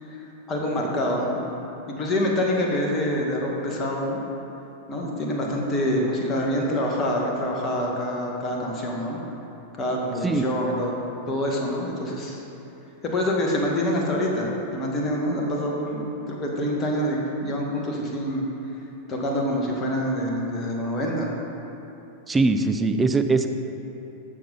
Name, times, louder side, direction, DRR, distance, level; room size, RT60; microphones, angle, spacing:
voice 1, 0.0-1.4 1.9-4.2 4.9-9.2 9.7-11.0 11.3-12.4 13.0-18.5 19.1-21.3, left 1 dB, 25° left, -1 dB, 1.9 m, -26 dB
voice 2, 22.3-23.5, right 3 dB, 10° right, 6 dB, 0.6 m, -21 dB
13.0 x 7.2 x 4.1 m, 2.9 s
figure-of-eight pair, 90°, 0 cm